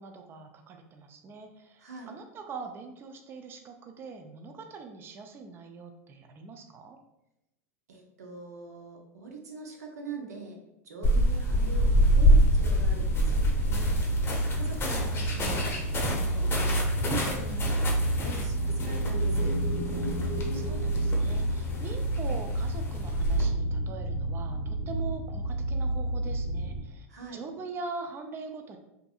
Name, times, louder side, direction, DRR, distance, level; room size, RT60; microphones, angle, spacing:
voice 1, 0.0-7.0 20.5-27.1 27.3-28.8, right 4 dB, 30° right, 5 dB, 0.3 m, -42 dB
voice 2, 1.8-2.1 7.9-10.6 10.8-13.9 14.5-19.5 27.1-27.4, right 4 dB, 85° right, 1 dB, 0.6 m, -43 dB
sound 1, 11.0-23.5, equal, 25° left, 0.7 m, -27 dB
sound 2, 11.8-26.8, right 1 dB, 80° left, 0.5 m, -30 dB
sound 3, 18.2-21.9, equal, 55° right, 0.8 m, -38 dB
2.6 x 2.5 x 2.3 m, 0.90 s
hypercardioid pair, 100°, 8 cm